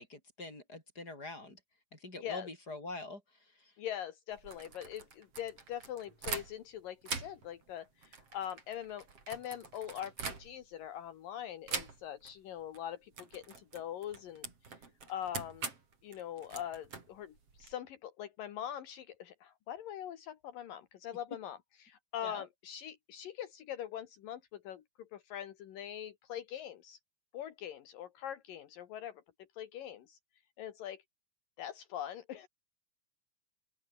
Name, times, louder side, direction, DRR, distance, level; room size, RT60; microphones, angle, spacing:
voice 1, 0.0-1.6 1.9-3.2 22.2-22.5, left 2 dB, 25° left, 8.1 m, -44 dB
voice 2, 3.8-14.5 15.1-15.7 16.0-27.0 27.3-29.2 29.5-30.2 30.6-31.0 31.6-32.5, left 10 dB, 75° left, 3.3 m, -43 dB
sound 1, 4.3-6.7 7.0-10.8 11.7-12.3 12.6-12.8 13.1-17.7, right 5 dB, 40° right, 5.0 m, -44 dB
open air
omnidirectional pair, 4.0 m